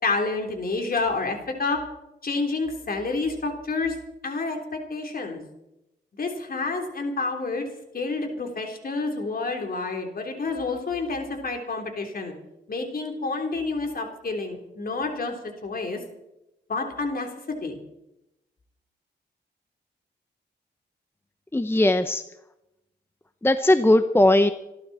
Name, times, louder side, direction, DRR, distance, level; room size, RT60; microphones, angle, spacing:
voice 1, 0.0-1.8 2.2-4.0 4.2-5.4 6.2-7.7 7.9-12.3 12.7-15.3 15.6-16.0 16.7-17.8, left 3 dB, 50° left, 3 dB, 3.6 m, -29 dB
voice 2, 21.5-22.2 23.4-24.5, left 1 dB, 10° left, 10 dB, 0.7 m, -19 dB
27.5 x 12.0 x 4.3 m, 0.88 s
wide cardioid pair, 95°, 19 cm